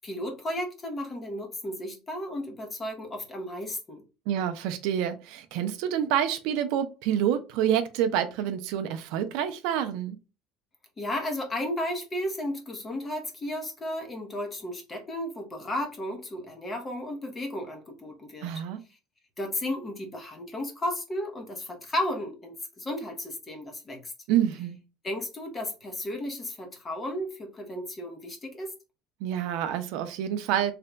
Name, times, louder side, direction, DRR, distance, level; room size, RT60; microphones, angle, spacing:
voice 1, 0.0-4.0 11.0-18.5 19.4-24.1 25.0-28.7, left 1 dB, 15° left, 0.7 m, -34 dB
voice 2, 4.3-10.2 18.4-18.8 24.3-24.8 29.2-30.7, right 10 dB, 60° right, 0.4 m, -27 dB
3.3 x 2.2 x 3.8 m
cardioid pair, 180°, 0 cm